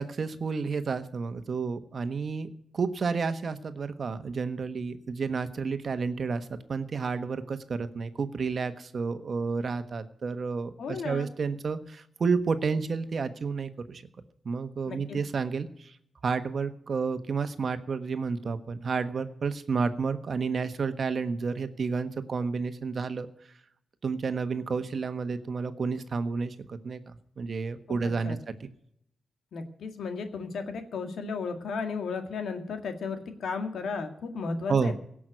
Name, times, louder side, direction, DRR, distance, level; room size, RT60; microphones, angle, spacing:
voice 1, 0.0-2.5 2.7-14.0 14.4-16.0 16.2-23.3 24.0-28.7 34.7-34.9, right 5 dB, 55° right, 10 dB, 1.3 m, -31 dB
voice 2, 10.8-11.3 14.9-15.2 27.9-28.0 28.2-28.4 29.5-34.9, left 4 dB, 75° left, 7 dB, 2.0 m, -34 dB
17.0 x 6.3 x 9.1 m, 0.71 s
cardioid pair, 55°, 0 cm